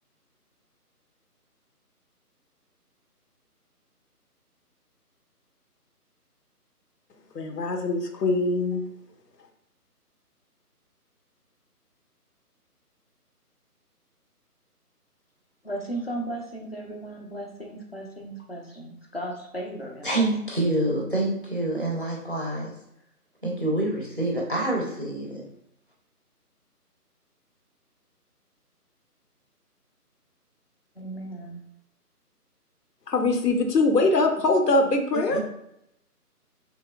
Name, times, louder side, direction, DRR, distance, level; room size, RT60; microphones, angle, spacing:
voice 1, 7.3-8.9 33.1-35.5, left 2 dB, 85° left, 5 dB, 0.7 m, -23 dB
voice 2, 15.6-20.3 31.0-31.6, right 1 dB, 40° left, 1 dB, 0.4 m, -36 dB
voice 3, 20.0-22.7 23.4-25.4 35.3-35.5, right 1 dB, 35° right, -2 dB, 0.5 m, -27 dB
3.2 x 2.9 x 2.2 m, 0.79 s
figure-of-eight pair, 155°, 47 cm